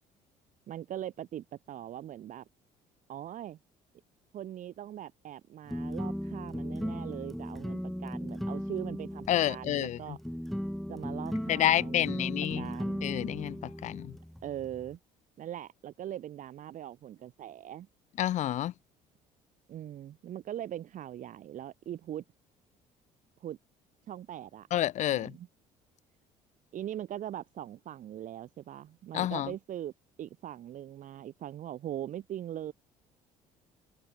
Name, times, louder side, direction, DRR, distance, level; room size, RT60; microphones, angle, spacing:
voice 1, 0.7-2.4 3.1-3.6 4.3-10.2 10.9-12.3 12.5-13.1 14.4-15.0 15.4-17.9 19.7-22.2 23.4-23.6 24.1-24.7 25.1-25.5 26.7-29.9 30.2-32.7, right 11 dB, 60° right, 1.7 m, -41 dB
sound 1, 5.7-15.0, equal, ahead, 1.3 m, -37 dB
voice 2, 9.3-10.2 11.5-12.7 13.0-14.1 18.2-18.7 24.7-25.3 29.1-29.5, left 12 dB, 50° left, 0.4 m, -29 dB
supercardioid pair, 85°, 15 cm